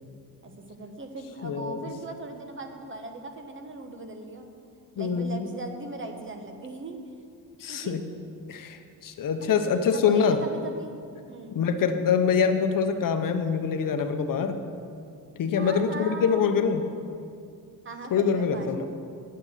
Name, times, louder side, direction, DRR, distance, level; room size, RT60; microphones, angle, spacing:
voice 1, 0.4-4.5 5.0-7.0 7.7-8.0 9.3-9.6 9.9-11.0 11.3-11.6 15.6-16.6 17.8-18.9, right 2 dB, 35° right, 5 dB, 1.0 m, -39 dB
voice 2, 1.4-1.9 5.0-5.5 7.6-8.0 8.5-10.4 11.5-14.6 15.4-16.8 18.1-18.9, left 6 dB, 60° left, 7 dB, 0.8 m, -25 dB
9.1 x 8.6 x 7.4 m, 2.5 s
wide cardioid pair, 170°, 36 cm